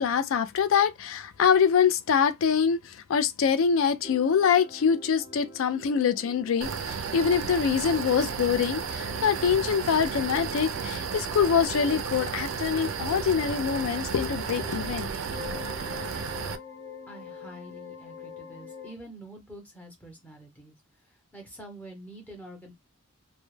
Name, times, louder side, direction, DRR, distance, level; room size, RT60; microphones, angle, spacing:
voice 1, 0.0-15.1, left 7 dB, 75° left, 0.3 m, -24 dB
sound 1, 4.0-11.2 11.6-15.0 15.3-19.0, left 3 dB, 55° left, 0.8 m, -45 dB
sound 2, 6.6-16.6, right 6 dB, 65° right, 0.3 m, -33 dB
voice 2, 17.1-20.7 21.3-22.7, right 1 dB, 5° left, 0.7 m, -46 dB
2.2 x 2.1 x 3.1 m
head